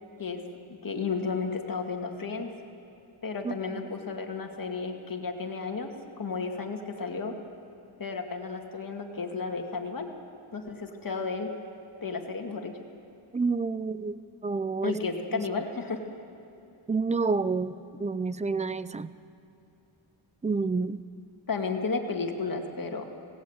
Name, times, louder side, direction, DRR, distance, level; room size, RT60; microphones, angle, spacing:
voice 1, 0.8-2.5 3.2-7.4 8.0-10.1 10.5-11.5 12.0-12.8 14.8-16.0 21.5-23.1, left 4 dB, 45° left, 3 dB, 2.2 m, -33 dB
voice 2, 3.4-3.8 13.3-15.0 15.3-15.4 16.9-19.1 20.4-21.0, right 4 dB, 15° right, 15 dB, 0.4 m, -29 dB
27.0 x 18.5 x 8.1 m, 2.9 s
wide cardioid pair, 170°, 48 cm